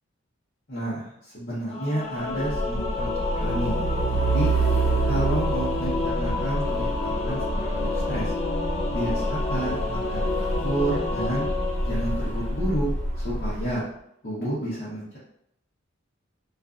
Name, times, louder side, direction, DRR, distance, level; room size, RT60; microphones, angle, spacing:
voice 1, 0.7-4.5 5.0-8.3 8.9-11.5 11.8-12.9 13.1-13.8 14.2-15.2, right 1 dB, 50° left, -9 dB, 0.9 m, -30 dB
Singing / Musical instrument, 1.7-12.9, left 3 dB, 35° left, 0.4 m, -30 dB
Truck, 2.3-13.7, right 2 dB, 90° right, 0.8 m, -27 dB
2.6 x 2.4 x 2.4 m, 0.75 s
head